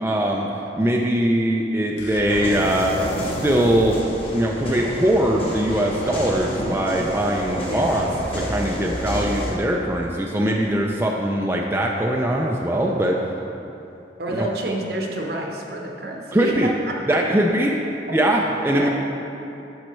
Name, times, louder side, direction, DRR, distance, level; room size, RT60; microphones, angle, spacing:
voice 1, 0.0-2.9 3.2-3.9 4.3-13.2 14.3-14.5 16.3-16.7 17.1-17.8 18.1-18.9, right 1 dB, 15° right, -1 dB, 0.4 m, -21 dB
sound 1, 2.0-4.1, left 3 dB, 75° left, 0.4 m, -35 dB
sound 2, 2.3-9.5, equal, 35° left, 1.5 m, -29 dB
voice 2, 7.7-8.1 14.2-16.9 18.1-18.2 18.7-18.9, right 1 dB, 60° right, 0 dB, 0.9 m, -29 dB
10.0 x 6.4 x 3.1 m, 2.9 s
head